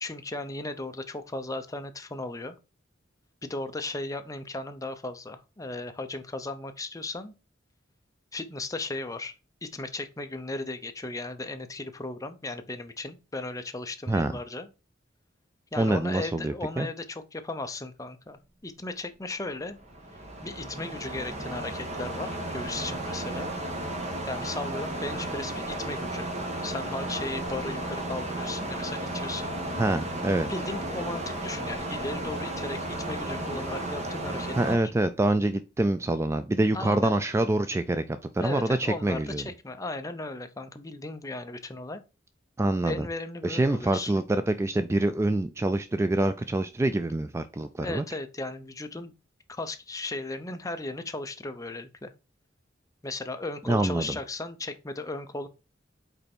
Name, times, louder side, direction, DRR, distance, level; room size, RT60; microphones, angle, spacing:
voice 1, 0.0-2.6 3.4-7.3 8.3-9.4 9.6-14.7 15.7-19.8 20.4-23.5 24.3-26.3 26.6-29.5 30.5-34.8 36.7-37.1 38.4-42.0 42.8-44.2 47.8-49.1 49.5-52.1 53.0-55.5, left 2 dB, 20° left, 0.7 m, -36 dB
voice 2, 15.8-16.9 29.7-30.5 34.6-39.4 42.6-43.1 43.4-48.0 53.7-54.2, right 2 dB, 15° right, 0.3 m, -26 dB
sound 1, 19.7-34.8, right 1 dB, 35° right, 1.5 m, -34 dB
5.4 x 4.3 x 4.4 m
head